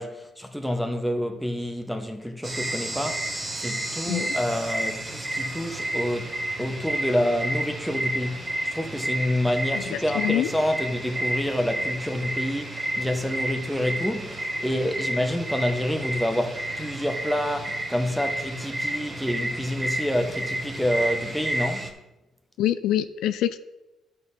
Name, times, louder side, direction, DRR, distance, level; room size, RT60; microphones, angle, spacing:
voice 1, 0.0-6.3 6.6-21.9, equal, ahead, 1.0 m, -28 dB
sound 1, 2.4-21.9, right 1 dB, 25° right, 1.4 m, -31 dB
voice 2, 9.8-10.5 22.6-23.6, left 12 dB, 90° left, 0.4 m, -25 dB
12.0 x 4.4 x 5.2 m
cardioid pair, 90°, 0 cm